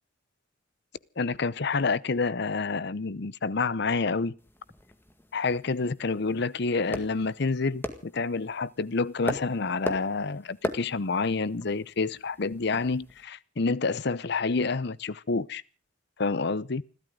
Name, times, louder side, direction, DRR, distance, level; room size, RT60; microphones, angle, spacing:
voice 1, 1.2-4.3 5.3-15.6 16.2-16.8, left 4 dB, 60° left, 0.8 m, -28 dB
sound 1, 4.4-13.2, left 1 dB, 10° left, 1.8 m, -40 dB
29.5 x 13.0 x 3.8 m
head